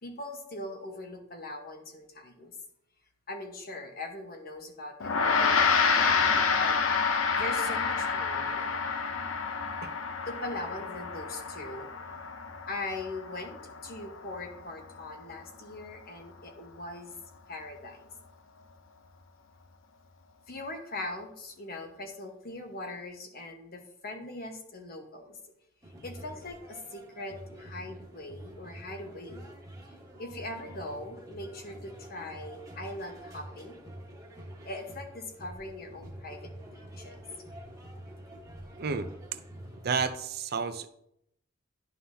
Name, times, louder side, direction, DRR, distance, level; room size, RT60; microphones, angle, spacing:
voice 1, 0.0-2.5 3.3-6.8 7.3-8.7 10.2-11.9 12.7-17.2 17.5-18.1 20.5-25.4 26.0-29.5 30.2-33.8 34.6-37.2, left 2 dB, 50° left, 3 dB, 1.2 m, -41 dB
Gong, 5.0-14.5, left 5 dB, 85° left, 0.8 m, -28 dB
sound 1, 25.8-40.1, right 1 dB, 15° right, 1.4 m, -47 dB
voice 2, 38.8-39.1 39.8-40.9, right 5 dB, 55° right, 10 dB, 0.5 m, -31 dB
11.0 x 5.6 x 2.8 m, 0.75 s
head